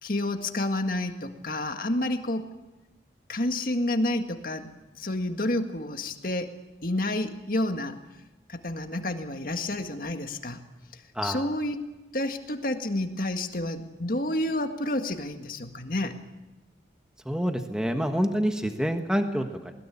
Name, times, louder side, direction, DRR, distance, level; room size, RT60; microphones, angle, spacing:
voice 1, 0.0-2.4 3.3-4.7 5.0-6.5 6.8-8.0 8.5-10.6 11.2-11.8 12.1-16.1, left 1 dB, 50° left, 6 dB, 1.9 m, -29 dB
voice 2, 11.1-11.5 17.2-19.7, equal, 5° right, 5 dB, 1.4 m, -27 dB
21.0 x 20.0 x 8.8 m, 1.1 s
head